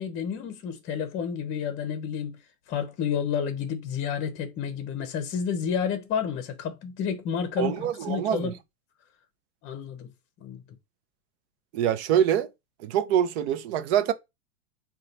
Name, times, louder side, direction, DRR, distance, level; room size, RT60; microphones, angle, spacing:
voice 1, 0.0-2.4 2.7-8.6 9.6-10.1 10.4-10.6, left 7 dB, 30° left, 0.7 m, -30 dB
voice 2, 7.6-8.5 11.7-12.5 12.8-14.1, right 10 dB, 50° right, 0.6 m, -24 dB
4.0 x 2.4 x 3.9 m
hypercardioid pair, 110°, 42 cm